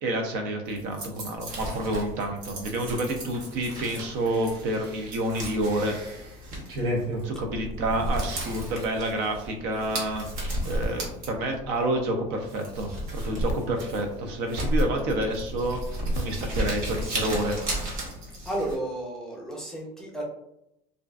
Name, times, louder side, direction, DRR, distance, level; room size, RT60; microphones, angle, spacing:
voice 1, 0.0-6.1 7.2-10.2 10.6-15.8 16.1-17.6, right 1 dB, 65° right, 4 dB, 0.5 m, -29 dB
sound 1, 0.7-11.5 11.9-12.0 12.1-18.5, right 1 dB, 90° right, 0.9 m, -39 dB
Crumpling crinkling, 1.4-18.7, equal, 45° right, 0.9 m, -36 dB
sound 2, 7.4-9.3 10.0-11.9 12.7-14.6 15.3-16.7, right 1 dB, 65° left, 0.5 m, -34 dB
voice 2, 18.4-20.2, right 1 dB, 5° left, -3 dB, 0.6 m, -32 dB
2.4 x 2.3 x 2.3 m, 0.81 s
cardioid pair, 140°, 19 cm